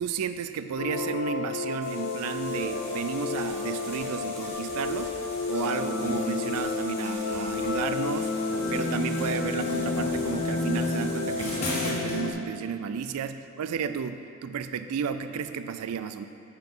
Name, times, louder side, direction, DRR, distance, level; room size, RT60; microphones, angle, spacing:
voice 1, 0.0-5.1 5.5-8.3 8.7-16.3, right 7 dB, 85° right, 11 dB, 0.3 m, -32 dB
sound 1, 0.8-12.3, left 3 dB, 65° left, 0.6 m, -30 dB
sound 2, 1.8-12.2, left 1 dB, 30° left, 1.9 m, -39 dB
8.9 x 5.9 x 3.7 m, 2.5 s
head